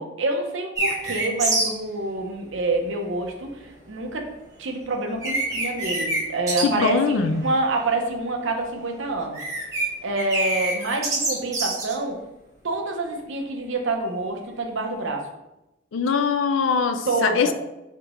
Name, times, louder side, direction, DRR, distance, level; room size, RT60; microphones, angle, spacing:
voice 1, 0.0-4.3 4.6-9.4 10.0-12.2 12.6-15.2 17.1-17.5, right 2 dB, 85° right, 2 dB, 0.8 m, -27 dB
sound 1, 0.8-1.7 4.7-4.8 5.2-6.2 6.5-6.6 6.9-7.5 7.8-8.1 9.2-9.9 10.1-11.9, right 2 dB, 15° right, 1.0 m, -26 dB
voice 2, 6.6-7.5 15.9-17.5, left 5 dB, 90° left, 9 dB, 0.4 m, -22 dB
4.9 x 3.4 x 3.0 m, 0.94 s
head